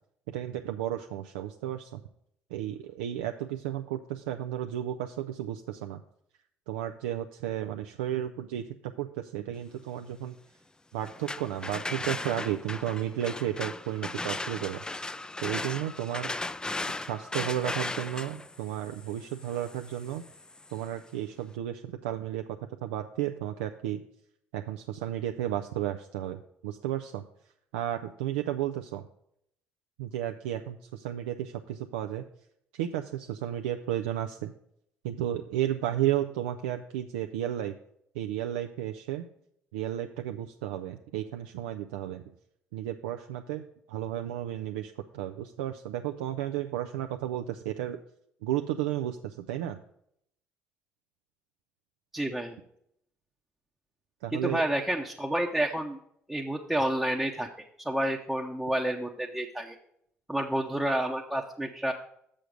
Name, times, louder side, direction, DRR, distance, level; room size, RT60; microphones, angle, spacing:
voice 1, 0.3-2.0 2.5-6.0 6.7-10.3 10.9-14.8 15.4-16.3 16.9-20.2 20.7-22.4 22.8-24.0 24.5-27.2 27.7-29.0 30.0-32.2 32.7-34.5 35.0-37.7 38.1-39.2 39.7-42.2 42.7-48.0 48.4-49.8 54.2-54.6, right 12 dB, 85° right, 6 dB, 0.3 m, -33 dB
sound 1, 11.0-20.8, left 2 dB, 15° left, 0.3 m, -37 dB
voice 2, 52.1-52.6 54.3-56.0 56.3-57.5 57.8-59.8 60.3-61.9, right 1 dB, 5° right, 0 dB, 0.8 m, -29 dB
6.8 x 6.3 x 5.0 m, 0.72 s
hypercardioid pair, 60°, 6 cm